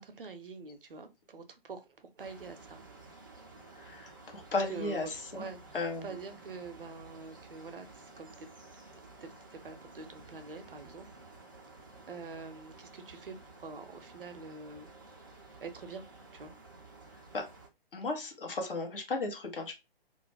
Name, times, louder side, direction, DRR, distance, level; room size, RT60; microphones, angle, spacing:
voice 1, 0.0-2.8 4.5-5.8 6.0-7.9 8.2-8.5 9.2-11.4 12.1-14.9 15.6-16.0 16.3-16.5, right 4 dB, 60° right, 0.6 m, -45 dB
sound 1, 2.2-17.7, right 3 dB, 20° right, 0.4 m, -53 dB
voice 2, 3.7-5.5 5.7-6.1 17.3-17.5 17.9-19.7, left 3 dB, 60° left, 1.0 m, -35 dB
2.5 x 2.1 x 3.2 m
figure-of-eight pair, 135°, 30 cm